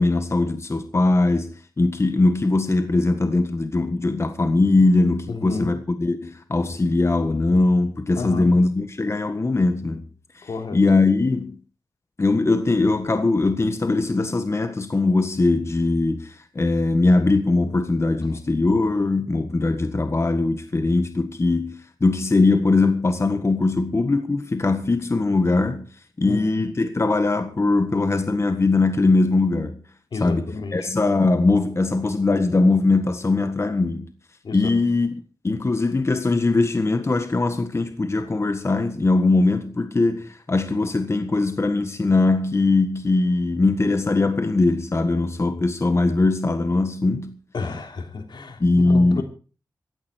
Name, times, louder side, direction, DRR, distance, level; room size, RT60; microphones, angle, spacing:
voice 1, 0.0-10.0 10.4-11.6 12.2-25.9 26.2-29.8 30.2-34.1 34.5-35.2 35.4-47.4 48.6-49.2, left 3 dB, 35° left, 1.6 m, -21 dB
voice 2, 5.3-5.8 8.2-8.5 10.4-10.8 26.2-26.6 30.1-30.8 34.4-34.6 47.5-49.2, left 4 dB, 85° left, 3.4 m, -31 dB
15.5 x 14.5 x 4.5 m
wide cardioid pair, 90°, 8 cm